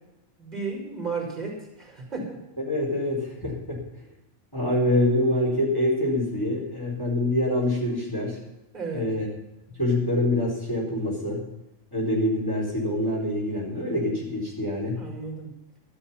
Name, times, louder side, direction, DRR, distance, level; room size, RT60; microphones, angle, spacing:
voice 1, 0.4-2.4 8.7-9.1 15.0-15.5, right 4 dB, 35° right, -2 dB, 5.0 m, -33 dB
voice 2, 2.7-3.8 4.5-8.4 8.9-9.3 9.8-11.4 11.9-15.0, left 1 dB, 15° left, -4 dB, 4.4 m, -25 dB
13.5 x 12.0 x 5.7 m, 0.92 s
omnidirectional pair, 1.3 m